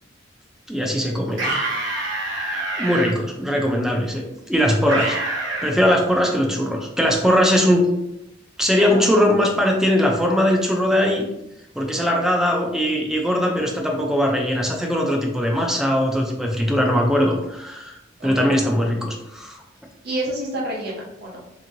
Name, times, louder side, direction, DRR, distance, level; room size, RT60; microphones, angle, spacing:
voice 1, 0.7-1.4 2.8-5.2 5.6-7.8 8.6-11.3 11.7-18.0 18.2-19.6, equal, 5° right, 0 dB, 0.4 m, -20 dB
sound 1, 1.3-3.1 4.9-5.7, right 2 dB, 85° right, 0.8 m, -26 dB
voice 2, 18.2-18.6 20.0-21.4, right 1 dB, 55° right, -2 dB, 0.9 m, -29 dB
2.9 x 2.6 x 2.6 m, 0.88 s
head